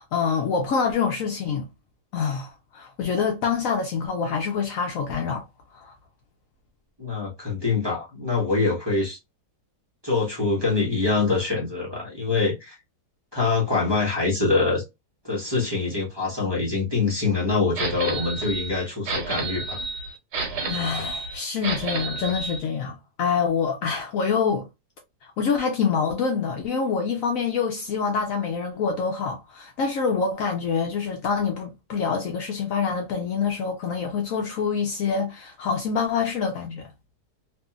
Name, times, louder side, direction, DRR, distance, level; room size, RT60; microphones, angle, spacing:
voice 1, 0.0-1.7 2.1-5.4 5.7-5.9 20.7-24.7 25.2-36.9, left 5 dB, 70° left, 0.9 m, -26 dB
voice 2, 7.0-9.2 10.0-12.8 13.3-14.8 15.2-19.8, left 3 dB, 20° right, 0.9 m, -24 dB
sound 1, 17.8-22.6, right 3 dB, 75° right, 1.3 m, -30 dB
2.8 x 2.6 x 2.3 m
omnidirectional pair, 1.7 m